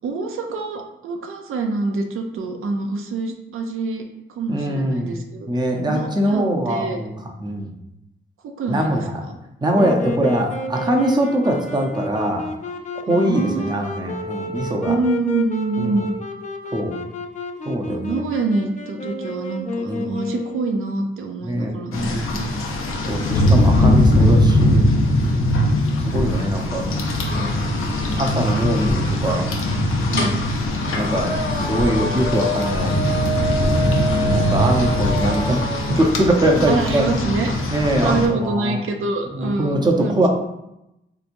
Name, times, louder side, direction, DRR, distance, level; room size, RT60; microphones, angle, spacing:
voice 1, 0.0-4.0 4.3-5.5 5.9-7.0 8.4-9.4 13.1-13.8 14.9-16.1 17.9-22.6 30.1-30.4 36.7-37.5 38.0-40.3, right 3 dB, 85° right, 4 dB, 0.4 m, -26 dB
voice 2, 4.5-5.1 5.5-7.1 7.4-7.7 8.7-9.2 9.6-12.4 13.1-15.0 15.8-15.9 16.7-16.9 17.7-18.1 19.9-20.1 21.4-22.3 23.1-24.8 25.1-25.4 26.1-27.0 28.2-29.4 30.9-33.0 34.3-35.6 36.0-37.1 37.7-38.8 39.3-40.3, right 1 dB, 20° right, 1 dB, 0.6 m, -22 dB
Wind instrument woodwind instrument, 9.7-20.9, left 3 dB, 35° left, 0.4 m, -31 dB
Rain, 21.9-38.3, left 1 dB, 85° left, 0.6 m, -20 dB
sound 1, 27.3-36.0, right 1 dB, 70° left, 1.2 m, -28 dB
3.3 x 2.9 x 2.5 m, 0.86 s
wide cardioid pair, 95°, 21 cm